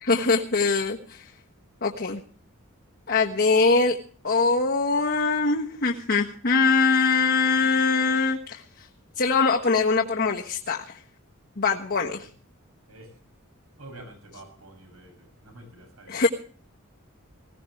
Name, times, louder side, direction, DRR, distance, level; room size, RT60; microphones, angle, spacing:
voice 1, 0.0-1.2 1.8-2.2 3.1-4.0 4.2-8.6 9.2-11.0 11.6-12.3 16.1-16.3, left 4 dB, 50° left, 0 dB, 1.4 m, -22 dB
voice 2, 13.8-16.2, right 1 dB, 80° right, 5 dB, 7.3 m, -47 dB
20.5 x 16.5 x 3.3 m, 0.43 s
head